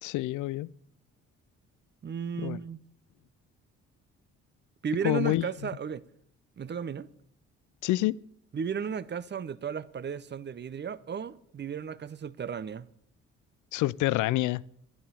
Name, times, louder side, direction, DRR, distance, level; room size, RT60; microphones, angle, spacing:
voice 1, 0.0-0.7 2.4-2.6 5.0-5.4 7.8-8.2 13.7-14.6, left 17 dB, 70° left, 0.5 m, -27 dB
voice 2, 2.0-2.8 4.8-6.0 6.6-7.1 8.5-12.9, right 7 dB, 35° right, 0.7 m, -34 dB
11.0 x 10.5 x 6.8 m
supercardioid pair, 60°, 31 cm